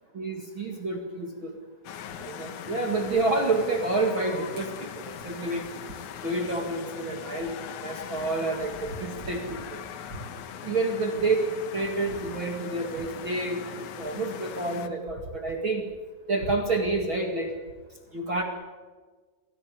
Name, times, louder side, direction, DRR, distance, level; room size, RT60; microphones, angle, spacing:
voice 1, 0.1-1.5 2.2-5.7 6.2-9.8 10.6-11.3 11.7-15.9 16.3-17.5 18.1-18.4, right 3 dB, 45° right, 3 dB, 1.7 m, -29 dB
sound 1, 1.8-14.9, left 9 dB, 85° left, 1.7 m, -40 dB
25.0 x 17.0 x 9.8 m, 1.4 s
omnidirectional pair, 5.6 m